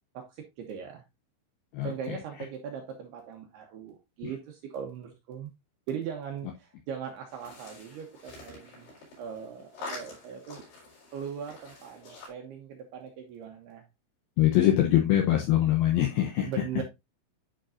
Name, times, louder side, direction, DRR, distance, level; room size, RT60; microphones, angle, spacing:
voice 1, 0.1-1.0 1.8-5.5 5.9-8.9 9.2-10.6 11.1-13.9 16.4-16.8, right 7 dB, 75° right, 3 dB, 2.5 m, -39 dB
sound 1, 7.3-12.3, left 3 dB, 60° left, 6.0 m, -46 dB
voice 2, 14.4-16.5, left 12 dB, 85° left, 1 dB, 2.1 m, -23 dB
11.5 x 5.2 x 2.5 m, 0.23 s
omnidirectional pair, 5.6 m